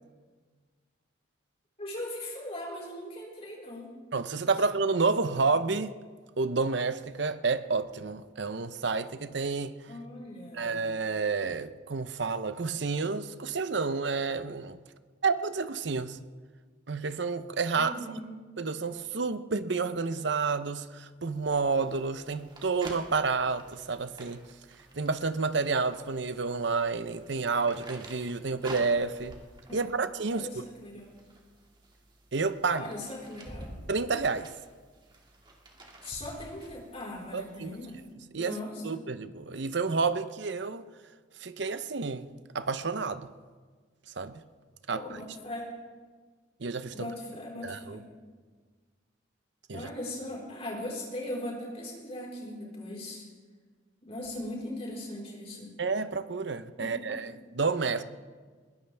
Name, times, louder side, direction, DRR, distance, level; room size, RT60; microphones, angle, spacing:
voice 1, 1.8-3.9 9.9-10.8 17.8-18.2 29.7-30.0 30.3-31.1 32.7-33.7 36.0-38.0 38.4-38.9 44.9-45.7 46.9-48.0 49.7-53.2 54.0-55.7 56.8-57.1, left 1 dB, 30° left, 4.6 m, -39 dB
voice 2, 4.1-5.9 6.4-9.7 10.5-14.8 15.2-16.2 16.9-18.0 18.6-24.5 24.9-29.4 29.7-30.5 32.3-32.9 33.9-34.5 37.3-37.8 38.3-38.6 38.8-40.8 41.4-43.3 44.2-44.4 44.9-45.0 46.6-47.1 47.6-48.0 49.7-49.9 55.8-58.0, right 4 dB, 65° right, 0.8 m, -30 dB
sound 1, 21.3-38.1, right 1 dB, 25° right, 2.2 m, -50 dB
21.5 x 17.5 x 3.5 m
head